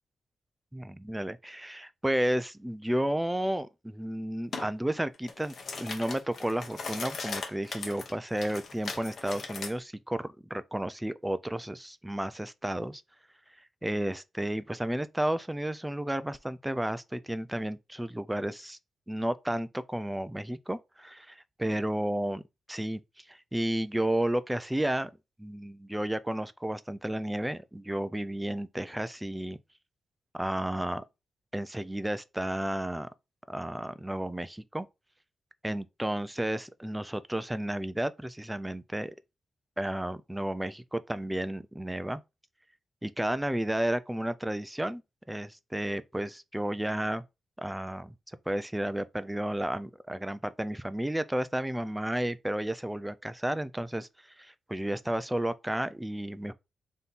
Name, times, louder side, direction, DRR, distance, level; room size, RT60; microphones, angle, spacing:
voice 1, 0.7-13.0 13.8-18.8 19.1-22.4 22.7-23.0 23.3-25.1 25.4-29.6 30.3-31.0 31.5-33.1 33.5-34.9 35.6-39.1 39.8-42.2 43.0-45.0 45.3-47.2 47.6-48.1 48.5-54.1 54.4-56.5, right 1 dB, 5° right, 0.3 m, -32 dB
sound 1, 4.5-4.7 5.1-9.7, left 4 dB, 50° left, 0.8 m, -39 dB
3.5 x 2.8 x 3.9 m
wide cardioid pair, 140°, 0 cm